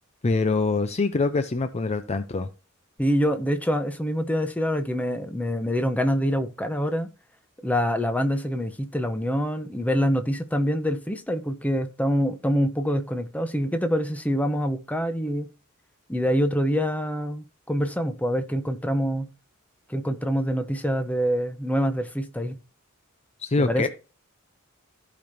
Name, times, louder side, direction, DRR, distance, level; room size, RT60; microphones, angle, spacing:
voice 1, 0.2-2.5 23.4-23.9, left 3 dB, 30° left, 0.5 m, -24 dB
voice 2, 3.0-7.1 7.6-15.5 16.1-19.3 19.9-22.6 23.6-23.9, equal, 5° left, 0.9 m, -25 dB
15.0 x 5.1 x 2.7 m
head